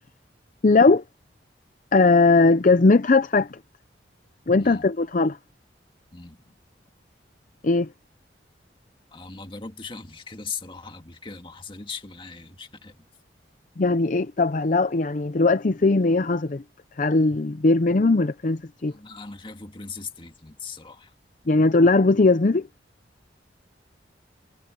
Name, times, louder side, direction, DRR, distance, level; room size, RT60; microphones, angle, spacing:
voice 1, 0.6-1.0 1.9-3.6 4.5-5.4 7.6-7.9 13.8-16.6 17.0-18.9 21.5-22.7, left 3 dB, 45° left, 0.6 m, -19 dB
voice 2, 4.6-4.9 6.1-6.6 9.1-13.0 18.9-21.1, left 5 dB, 30° left, 2.0 m, -39 dB
head